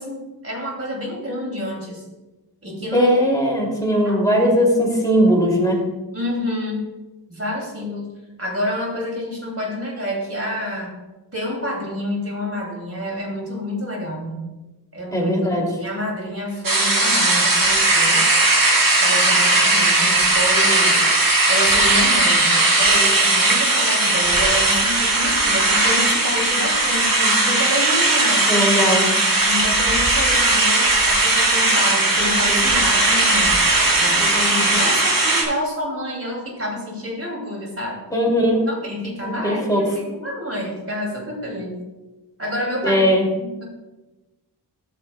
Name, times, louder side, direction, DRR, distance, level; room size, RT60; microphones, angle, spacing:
voice 1, 0.0-2.1 2.6-3.1 4.0-4.4 6.1-6.8 7.3-8.1 8.4-10.9 11.3-14.5 14.9-18.3 19.0-21.1 21.5-27.1 27.5-28.5 29.4-33.6 34.0-38.0 38.7-41.8 42.4-43.1 43.4-43.6, equal, 35° right, -1 dB, 2.6 m, -28 dB
voice 2, 2.9-5.8 15.1-15.7 27.1-27.4 28.5-29.1 38.1-38.7 39.2-39.8 42.8-43.2, equal, 10° left, -3 dB, 2.7 m, -19 dB
sound 1, 16.6-35.4, right 2 dB, 55° right, 1.6 m, -17 dB
13.0 x 6.6 x 2.3 m, 1.1 s
wide cardioid pair, 60°, 41 cm